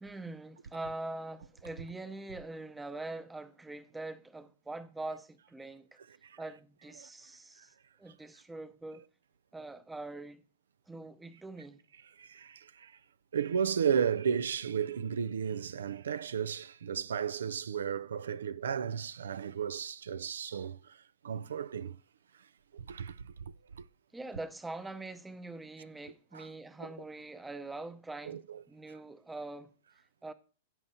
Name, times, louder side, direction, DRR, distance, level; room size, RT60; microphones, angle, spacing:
voice 1, 0.0-5.9 6.4-7.7 8.0-9.0 9.5-10.4 10.9-11.8 24.1-28.4 28.7-29.7 30.2-30.3, right 2 dB, 5° right, 0.7 m, -43 dB
voice 2, 12.2-13.0 13.3-22.0 22.7-23.8 26.3-26.5 26.8-26.9 28.2-28.6, right 7 dB, 85° right, 0.4 m, -34 dB
16.5 x 7.1 x 2.7 m
hypercardioid pair, 130°, 0 cm